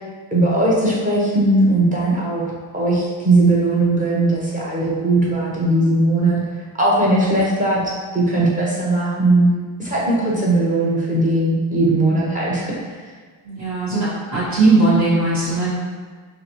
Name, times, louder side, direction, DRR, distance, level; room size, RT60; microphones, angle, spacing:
voice 1, 0.3-2.5 2.7-6.4 6.8-9.5 9.8-12.7, right 2 dB, 15° right, -5 dB, 0.7 m, -18 dB
voice 2, 10.3-10.7 13.4-15.7, right 2 dB, 35° right, -10 dB, 0.9 m, -19 dB
3.8 x 2.1 x 2.9 m, 1.6 s
cardioid pair, 100°, 49 cm